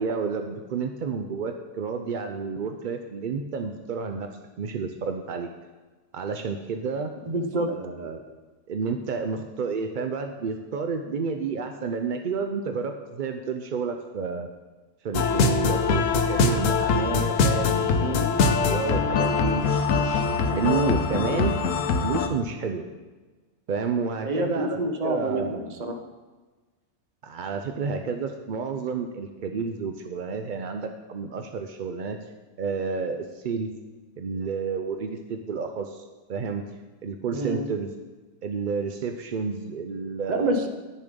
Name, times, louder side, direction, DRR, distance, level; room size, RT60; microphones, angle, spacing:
voice 1, 0.0-4.3 4.6-5.5 6.1-7.1 7.7-8.3 8.7-14.5 15.0-21.5 22.0-22.8 23.7-24.8 25.0-25.7 27.2-32.2 32.6-33.7 34.2-36.0 36.3-36.6 37.0-37.9 38.4-40.7, right 5 dB, 60° right, 6 dB, 0.5 m, -30 dB
voice 2, 7.3-7.7 18.0-18.4 24.2-26.0 37.3-37.7 40.3-40.7, right 1 dB, 35° right, 5 dB, 0.8 m, -27 dB
sound 1, 15.1-22.3, left 4 dB, 65° left, 1.1 m, -23 dB
9.8 x 7.0 x 5.2 m, 1.3 s
omnidirectional pair, 1.5 m